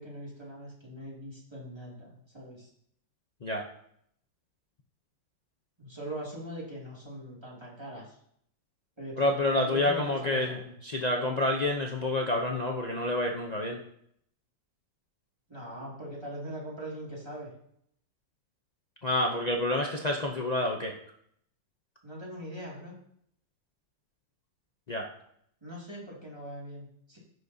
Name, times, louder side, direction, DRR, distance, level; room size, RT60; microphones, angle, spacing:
voice 1, 0.0-2.7 5.8-8.2 9.0-10.8 15.5-17.5 22.0-23.0 25.6-27.2, right 1 dB, 15° right, -4 dB, 2.3 m, -41 dB
voice 2, 9.2-13.8 19.0-20.9 24.9-25.1, left 1 dB, 65° left, 0 dB, 0.4 m, -28 dB
15.0 x 6.3 x 2.7 m, 0.70 s
omnidirectional pair, 1.9 m